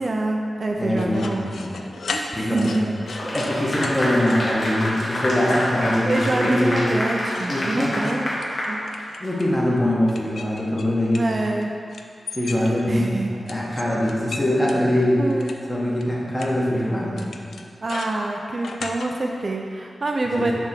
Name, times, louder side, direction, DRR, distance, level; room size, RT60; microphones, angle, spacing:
voice 1, 0.0-1.6 2.1-2.8 3.5-3.7 6.1-8.3 8.7-8.8 11.1-11.7 12.9-13.3 15.2-15.5 17.8-20.5, right 2 dB, 40° right, 1 dB, 0.4 m, -26 dB
voice 2, 0.8-1.7 2.3-2.9 3.2-6.9 7.5-7.9 9.2-11.2 12.3-15.3 15.7-17.2 20.4-20.5, left 1 dB, 15° left, -5 dB, 1.3 m, -23 dB
sound 1, 1.0-3.5 3.8-4.0 4.3-4.7 5.0-5.6 5.9-6.4 6.8-9.5 10.1-11.6 11.9-13.0 13.5-15.6 16.0-16.1 16.4-16.5 17.2-19.1, left 4 dB, 80° left, 0.4 m, -36 dB
Clapping / Applause, 3.1-9.4, left 1 dB, 55° left, 1.2 m, -27 dB
6.8 x 3.4 x 5.9 m, 2.3 s
wide cardioid pair, 125°, 0 cm